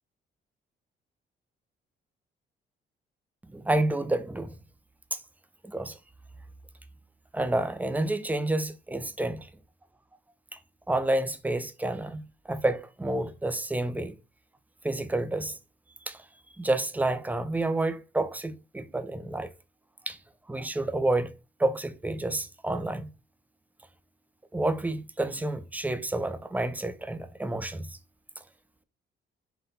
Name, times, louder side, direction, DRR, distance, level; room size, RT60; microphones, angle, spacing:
voice 1, 3.5-4.5 5.1-5.2 5.6-6.0 7.3-9.5 10.5-10.6 10.9-14.1 14.8-15.6 16.1-16.2 16.6-19.5 20.1-20.2 20.5-21.3 21.6-23.1 24.5-27.9, right 2 dB, 10° right, 0.4 m, -29 dB
3.9 x 2.2 x 3.8 m
cardioid pair, 90°, 20 cm